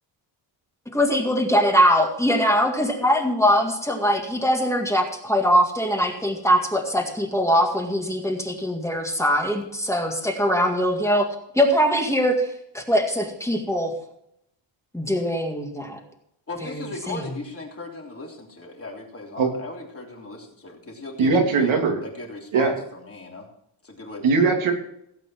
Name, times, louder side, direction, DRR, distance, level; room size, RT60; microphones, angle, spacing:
voice 1, 0.9-11.3 11.5-12.5 12.7-13.9 14.9-16.0 17.1-17.2, equal, 5° left, 2 dB, 2.0 m, -22 dB
voice 2, 16.5-21.7 22.0-23.5 23.8-24.2, left 2 dB, 30° left, -1 dB, 3.3 m, -37 dB
voice 3, 21.2-22.0 22.5-22.7 24.2-24.7, right 4 dB, 85° right, 2 dB, 2.9 m, -20 dB
16.5 x 8.4 x 4.6 m, 0.76 s
wide cardioid pair, 145°, 47 cm